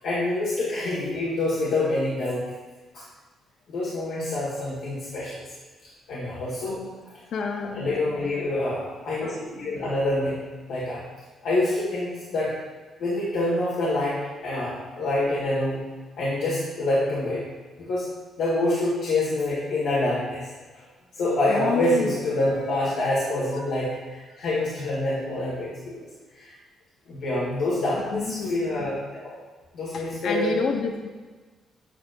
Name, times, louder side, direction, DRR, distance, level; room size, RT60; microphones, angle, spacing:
voice 1, 0.0-2.4 2.9-3.0 3.7-5.4 6.1-6.8 7.0-7.2 7.7-11.0 11.4-12.5 13.0-14.2 14.4-15.8 16.2-17.4 17.8-18.0 18.4-20.5 20.7-20.8 21.1-26.0 26.3-26.5 27.1-29.3 29.7-30.5, left 1 dB, 85° left, -8 dB, 1.8 m, -26 dB
voice 2, 7.3-7.9 21.5-22.2 23.5-23.6 27.1-27.2 28.1-28.6 29.9-31.1, left 5 dB, 70° left, 4 dB, 0.6 m, -29 dB
8.5 x 5.1 x 2.6 m, 1.3 s
cardioid pair, 90°, 0 cm